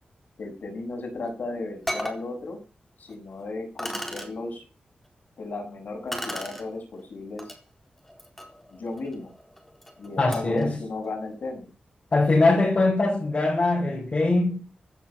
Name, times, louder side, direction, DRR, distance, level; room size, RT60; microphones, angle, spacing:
voice 1, 0.4-2.6 3.0-4.6 5.4-7.5 8.7-9.3 10.0-11.7, left 2 dB, 70° left, 6.7 m, -35 dB
sound 1, 1.2-1.3 1.9-2.2 3.1-3.2 3.8-4.3 6.1-6.6 7.4-7.6 8.0-10.6, equal, 5° left, 4.1 m, -35 dB
voice 2, 10.2-10.8 12.1-14.6, left 2 dB, 40° left, 4.6 m, -22 dB
16.5 x 9.9 x 5.7 m
wide cardioid pair, 135°, 3 cm